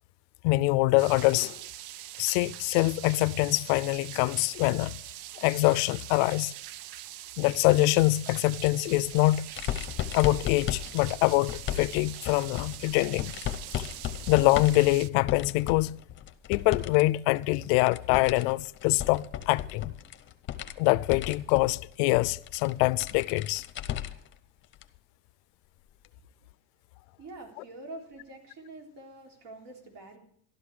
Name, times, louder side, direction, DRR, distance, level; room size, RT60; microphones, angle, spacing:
voice 1, 0.4-1.6 2.2-5.0 5.4-6.5 7.4-9.5 10.1-13.3 13.8-13.9 14.3-16.0 16.5-19.9 20.8-23.6, left 20 dB, 80° left, 0.6 m, -24 dB
sound 1, 1.0-15.1, right 14 dB, 85° right, 0.7 m, -43 dB
sound 2, 8.5-17.0 17.3-24.3 24.7-24.8 26.0-26.1, left 11 dB, 30° left, 0.8 m, -36 dB
voice 2, 27.2-30.2, right 2 dB, 60° right, 3.8 m, -45 dB
13.0 x 12.5 x 4.9 m
cardioid pair, 170°, 39 cm